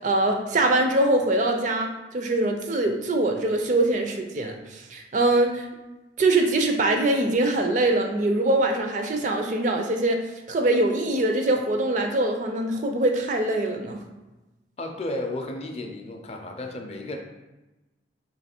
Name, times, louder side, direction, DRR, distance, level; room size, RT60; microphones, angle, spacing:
voice 1, 0.0-5.7 6.2-10.2 10.5-14.0, right 2 dB, 40° right, 4 dB, 0.4 m, -23 dB
voice 2, 14.8-17.2, left 2 dB, 35° left, 2 dB, 0.4 m, -33 dB
3.1 x 2.9 x 4.3 m, 1.1 s
head